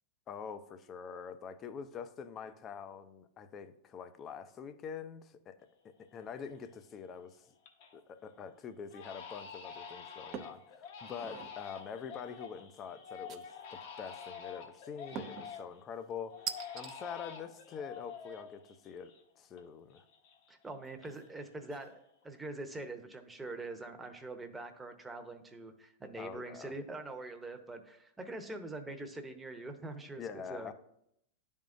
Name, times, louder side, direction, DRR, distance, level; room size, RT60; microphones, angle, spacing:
voice 1, 0.3-5.6 5.8-7.4 7.9-13.4 13.7-16.4 16.7-19.1 19.4-20.0 26.2-26.7 30.2-30.7, left 6 dB, 30° left, 11 dB, 0.5 m, -45 dB
Crying sobbing, 5.7-5.8 6.3-6.8 7.2-8.0 8.3-8.5 8.9-15.8 16.3-19.6 19.9-21.4 21.7-22.2, left 6 dB, 60° left, 1.1 m, -48 dB
sound 1, 10.3-10.6 11.1-11.6 13.3-13.8 15.2-15.5 16.5-16.9, right 8 dB, 40° right, 0.5 m, -41 dB
voice 2, 15.1-15.5 20.5-30.2 30.5-30.7, right 2 dB, 10° right, 5 dB, 0.8 m, -44 dB
10.5 x 3.6 x 2.6 m, 0.75 s
hypercardioid pair, 105°, 0 cm